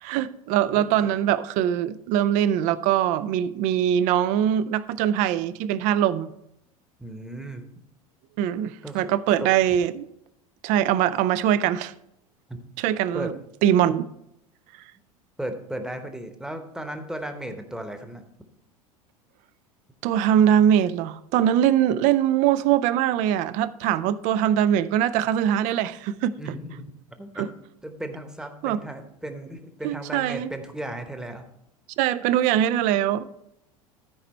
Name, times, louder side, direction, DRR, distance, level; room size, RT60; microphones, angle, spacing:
voice 1, 0.0-6.3 8.4-10.1 10.6-11.9 12.8-13.3 13.6-14.1 20.0-26.3 27.4-27.5 28.6-28.8 29.8-30.5 32.0-33.3, right 10 dB, 40° right, 0.4 m, -22 dB
voice 2, 0.7-1.1 7.0-7.7 8.8-9.1 9.4-9.8 12.5-12.6 13.1-13.3 15.4-18.2 26.4-26.9 27.2-27.5 27.8-31.4, right 1 dB, 5° right, 1.0 m, -35 dB
13.0 x 4.9 x 4.3 m
figure-of-eight pair, 80°, 19 cm